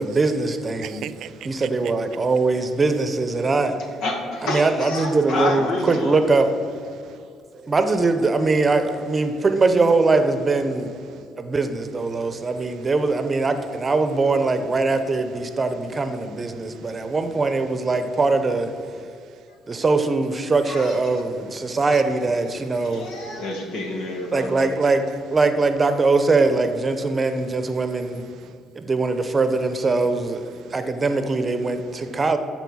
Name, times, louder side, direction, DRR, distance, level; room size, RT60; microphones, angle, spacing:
voice 1, 0.0-1.1 1.4-3.8 4.4-6.5 7.5-10.9 11.4-18.7 19.7-23.1 24.3-25.0 25.3-28.2 28.8-30.4 30.7-32.4, right 3 dB, 30° right, 8 dB, 0.8 m, -21 dB
voice 2, 0.8-2.3 3.4-3.5 6.9-7.3 11.1-11.3 12.1-12.9 16.5-17.1 19.0-19.2 21.6-21.8 22.5-22.7 23.0-23.4 24.6-24.9 27.1-27.2 27.8-28.6 30.6-30.8 32.1-32.2, right 10 dB, 70° right, 15 dB, 0.3 m, -43 dB
voice 3, 4.0-6.2 20.7-21.2 22.6-24.6, left 2 dB, 80° left, 2 dB, 1.7 m, -29 dB
12.5 x 4.5 x 6.3 m, 2.5 s
cardioid pair, 95°, 0 cm